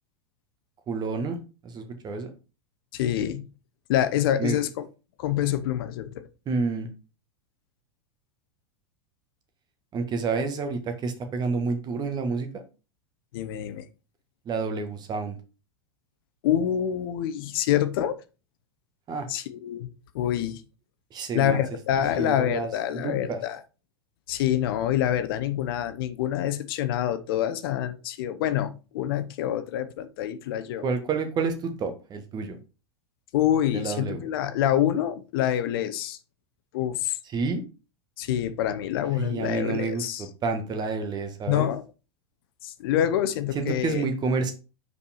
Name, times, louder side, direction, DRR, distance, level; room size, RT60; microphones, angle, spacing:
voice 1, 0.9-1.4 1.6-2.3 4.4-4.6 6.4-6.9 9.9-12.6 14.4-15.4 19.1-19.3 21.1-21.6 22.2-23.4 30.8-32.6 33.7-34.3 37.3-37.6 39.2-41.7 43.5-44.5, right 4 dB, 30° right, 7 dB, 1.5 m, -29 dB
voice 2, 2.9-3.5 3.9-4.7 5.2-6.2 13.3-13.9 16.4-18.2 19.3-19.9 20.1-20.6 21.3-23.6 24.3-30.8 33.3-36.2 36.7-37.2 38.2-40.2 41.5-41.8 42.6-44.0, left 11 dB, 60° left, 11 dB, 0.8 m, -26 dB
5.3 x 4.8 x 4.3 m, 0.31 s
hypercardioid pair, 95°, 14 cm